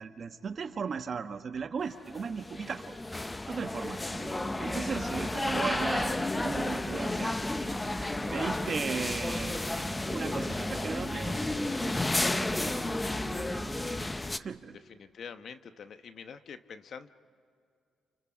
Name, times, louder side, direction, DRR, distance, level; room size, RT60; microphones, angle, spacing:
voice 1, 0.0-2.9 3.5-4.0 4.6-7.4 8.3-9.8 10.1-12.9 13.2-13.7 14.3-14.8, right 6 dB, 45° right, 8 dB, 1.4 m, -37 dB
sound 1, 1.9-14.4, left 2 dB, 15° left, 0.7 m, -32 dB
voice 2, 3.8-4.3 14.2-14.5 14.9-17.1, left 6 dB, 60° left, 10 dB, 1.0 m, -46 dB
sound 2, 4.1-14.1, right 4 dB, 15° right, 4.6 m, -46 dB
29.5 x 29.0 x 5.1 m, 2.3 s
cardioid pair, 90°, 0 cm